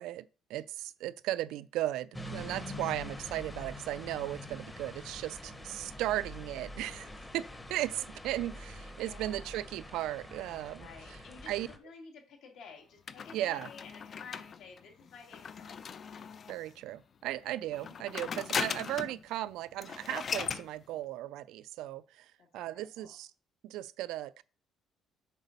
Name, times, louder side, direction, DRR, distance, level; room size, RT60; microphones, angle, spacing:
voice 1, 0.0-10.9 11.5-11.7 13.3-13.7 16.5-23.3 23.6-24.4, right 14 dB, 85° right, 0.3 m, -36 dB
sound 1, 2.1-11.8, left 1 dB, 10° left, 0.8 m, -45 dB
voice 2, 8.9-9.7 10.8-15.8 22.4-23.2, left 5 dB, 70° left, 2.4 m, -52 dB
sound 2, 13.1-16.7 17.7-19.2 19.5-19.6 19.8-20.7, left 6 dB, 35° left, 0.4 m, -38 dB
8.1 x 4.0 x 5.3 m
cardioid pair, 155°, 0 cm